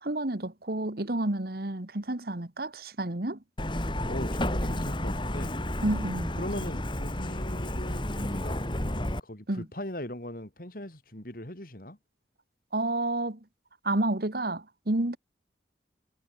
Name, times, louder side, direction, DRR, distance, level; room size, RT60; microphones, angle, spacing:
voice 1, 0.0-3.4 5.8-6.4 9.5-9.6 12.7-13.4 13.8-15.2, right 2 dB, 60° right, 1.7 m, -30 dB
Truck, 3.6-9.2, left 1 dB, 25° left, 3.0 m, -31 dB
voice 2, 4.0-5.5 6.4-12.0, left 1 dB, 50° left, 4.1 m, -39 dB
head